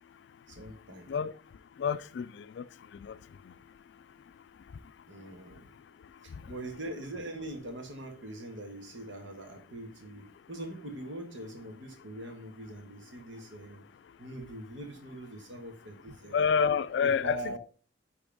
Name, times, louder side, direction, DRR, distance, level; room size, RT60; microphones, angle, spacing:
voice 1, 0.5-1.1 5.1-5.7 6.2-13.8 14.2-16.5 17.0-17.6, right 1 dB, 90° right, 1.6 m, -42 dB
voice 2, 1.8-2.6 3.0-3.2 16.3-17.6, left 6 dB, 65° left, 0.3 m, -28 dB
10.0 x 3.5 x 3.5 m
head